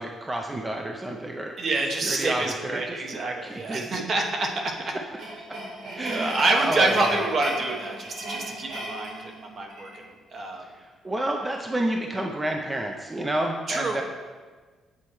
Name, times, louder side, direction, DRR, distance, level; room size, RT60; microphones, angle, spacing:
voice 1, 0.0-1.5 2.0-3.0 3.4-4.1 5.4-5.5 6.0-7.1 10.6-14.0, right 1 dB, 20° right, 2 dB, 0.5 m, -30 dB
voice 2, 1.6-4.9 6.1-10.0 10.3-10.6 13.7-14.0, right 2 dB, 50° right, 1 dB, 0.9 m, -27 dB
sound 1, 4.6-10.0, right 1 dB, 85° right, 1.7 m, -36 dB
8.2 x 4.2 x 3.0 m, 1.4 s
cardioid pair, 90°, 0 cm